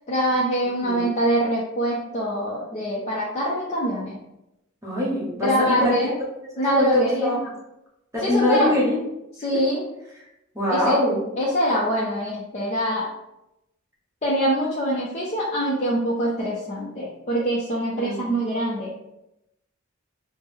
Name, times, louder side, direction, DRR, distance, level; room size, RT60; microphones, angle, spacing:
voice 1, 0.1-4.2 5.4-6.2 6.6-7.4 8.2-8.7 9.4-9.8 10.7-11.0 11.4-13.1 14.2-18.9, equal, 35° left, -6 dB, 0.5 m, -24 dB
voice 2, 4.8-6.0 6.8-7.5 8.1-9.0 10.5-11.2 17.9-18.4, left 1 dB, 15° right, -5 dB, 1.0 m, -23 dB
3.2 x 2.1 x 3.4 m, 0.86 s
head